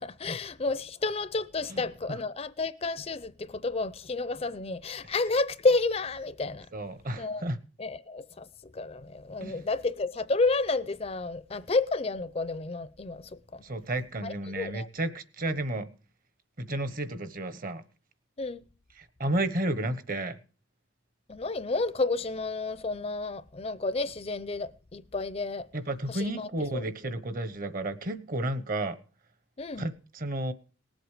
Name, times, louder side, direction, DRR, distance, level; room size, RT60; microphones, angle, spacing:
voice 1, 0.0-6.7 7.2-7.4 7.8-13.6 14.2-14.9 18.4-18.7 21.3-25.7 26.1-26.8 29.6-29.9, left 3 dB, 30° left, 0.5 m, -31 dB
voice 2, 6.7-7.6 9.4-9.6 13.6-15.9 16.6-17.8 19.0-20.4 25.7-29.0 29.8-30.5, right 1 dB, 45° right, 1.1 m, -32 dB
19.0 x 7.9 x 4.9 m
head